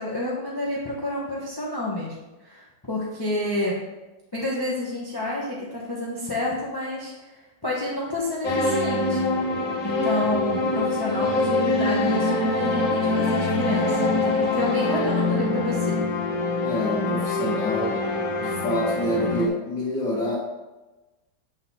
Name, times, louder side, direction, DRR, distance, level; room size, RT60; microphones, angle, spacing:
voice 1, 0.0-2.1 2.4-3.8 4.3-7.3 7.6-9.2 9.8-16.0, left 1 dB, 15° left, -4 dB, 0.8 m, -29 dB
sound 1, 8.4-19.5, left 2 dB, 50° left, 1.8 m, -24 dB
voice 2, 16.6-18.0 18.4-20.4, left 1 dB, 65° left, -7 dB, 1.8 m, -27 dB
8.6 x 3.9 x 4.2 m, 1.1 s
omnidirectional pair, 2.1 m